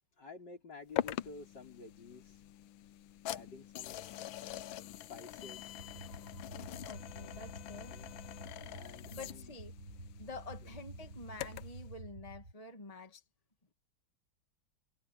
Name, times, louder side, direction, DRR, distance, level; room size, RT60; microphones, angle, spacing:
voice 1, 0.2-2.4 3.3-4.2 5.1-5.8 7.9-8.1 8.6-9.5, left 4 dB, 65° left, 5.3 m, -51 dB
sound 1, 1.0-11.8, left 13 dB, 85° left, 1.5 m, -44 dB
sound 2, 5.8-12.5, right 1 dB, 45° right, 5.0 m, -50 dB
voice 2, 6.9-7.9 9.1-9.7 10.2-13.2, left 2 dB, 20° left, 2.3 m, -48 dB
omnidirectional pair, 2.1 m